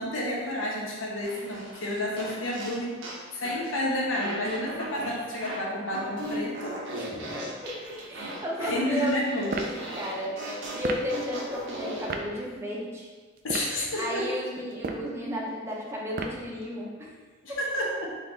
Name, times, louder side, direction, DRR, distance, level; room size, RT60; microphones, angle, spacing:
voice 1, 0.0-3.0 3.3-6.8 8.6-9.6 13.4-14.3 17.4-18.1, left 1 dB, 75° left, -3 dB, 1.0 m, -30 dB
sound 1, 1.2-3.7 4.1-12.1, right 1 dB, 60° right, 0.8 m, -38 dB
voice 2, 7.0-7.3 7.6-9.1 9.4-13.1 14.0-17.1 17.5-17.6, equal, 10° right, -4 dB, 0.7 m, -34 dB
sound 2, 9.5-9.8 10.8-11.1 12.1-12.3 13.4-13.8 14.7-15.1 16.2-16.5, right 3 dB, 45° right, 0.3 m, -32 dB
3.9 x 3.4 x 3.9 m, 1.4 s
head